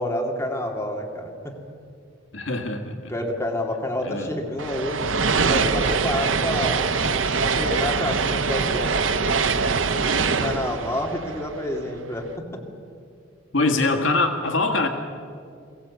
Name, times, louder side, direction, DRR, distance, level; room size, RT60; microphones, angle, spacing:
voice 1, 0.0-1.6 3.1-5.0 5.5-6.9 7.4-8.9 10.3-12.6, left 1 dB, 15° left, 1 dB, 2.4 m, -28 dB
voice 2, 2.3-3.1 4.0-4.3 13.5-14.9, left 2 dB, 65° left, 5 dB, 1.8 m, -23 dB
sound 1, 4.6-12.0, right 4 dB, 70° right, 0.9 m, -23 dB
22.5 x 16.0 x 8.3 m, 2.4 s
head